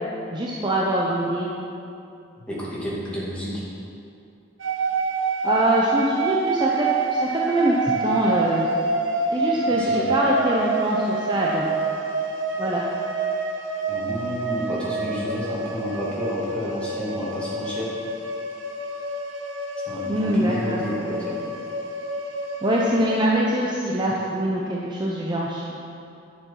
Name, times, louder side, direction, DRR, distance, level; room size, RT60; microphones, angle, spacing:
voice 1, 0.3-1.5 5.4-6.9 7.2-8.7 9.3-11.7 12.6-12.8 20.1-20.8 22.6-25.7, right 1 dB, 25° right, -4 dB, 0.8 m, -23 dB
voice 2, 2.5-3.6 9.8-10.1 13.9-17.9 19.9-21.4, equal, 5° left, -8 dB, 2.4 m, -30 dB
sound 1, 4.6-23.3, right 3 dB, 85° right, 0.9 m, -27 dB
9.9 x 7.0 x 5.8 m, 2.6 s
head